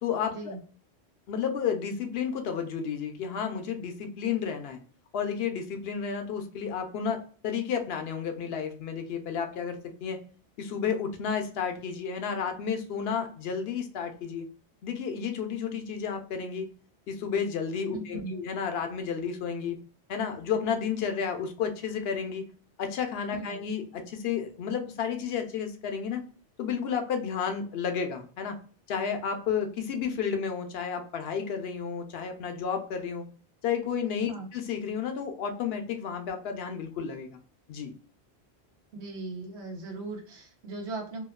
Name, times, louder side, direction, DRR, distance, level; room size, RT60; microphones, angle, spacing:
voice 1, 0.0-0.6 1.3-4.8 5.1-10.2 10.6-14.5 14.8-16.7 17.1-19.8 20.1-22.4 22.8-26.2 26.6-28.6 28.9-33.3 33.6-37.4 37.7-37.9, left 7 dB, 70° left, 6 dB, 0.8 m, -32 dB
voice 2, 17.9-18.4 23.3-23.6 34.3-34.5 38.9-41.2, right 3 dB, 85° right, 1 dB, 1.1 m, -38 dB
2.8 x 2.3 x 2.3 m, 0.42 s
omnidirectional pair, 1.1 m